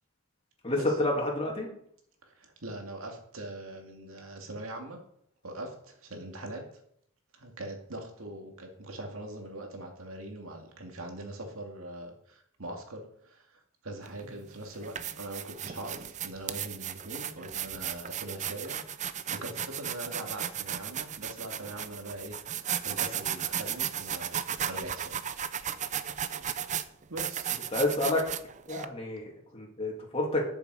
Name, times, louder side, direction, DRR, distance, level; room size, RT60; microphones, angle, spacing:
voice 1, 0.6-1.7 27.7-28.2 28.7-30.4, left 2 dB, 30° left, -1 dB, 2.7 m, -29 dB
voice 2, 2.2-5.0 5.4-6.6 7.3-24.4 24.7-25.2 27.1-27.7, right 1 dB, 75° right, 2 dB, 2.4 m, -42 dB
sound 1, 14.1-14.2 14.7-28.9, right 9 dB, 35° right, 0.6 m, -35 dB
12.5 x 7.0 x 4.9 m, 0.69 s
head